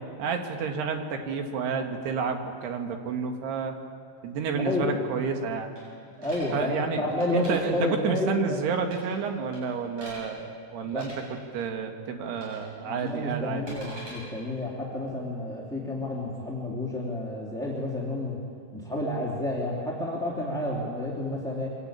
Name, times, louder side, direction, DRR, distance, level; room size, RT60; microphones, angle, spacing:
voice 1, 0.2-3.7 4.2-5.7 6.5-11.1 11.5-13.8, right 5 dB, 65° right, 4 dB, 3.4 m, -30 dB
voice 2, 4.5-5.0 6.2-8.6 10.9-11.1 12.8-18.4 18.7-21.7, left 1 dB, ahead, -5 dB, 1.6 m, -30 dB
sound 1, 5.8-6.5 7.1-7.5 8.8-9.2 9.5-10.2 10.9-11.1 12.4-12.7 13.0-14.2, right 1 dB, 35° right, 9.2 m, -45 dB
25.5 x 18.0 x 9.0 m, 2.3 s
omnidirectional pair, 5.6 m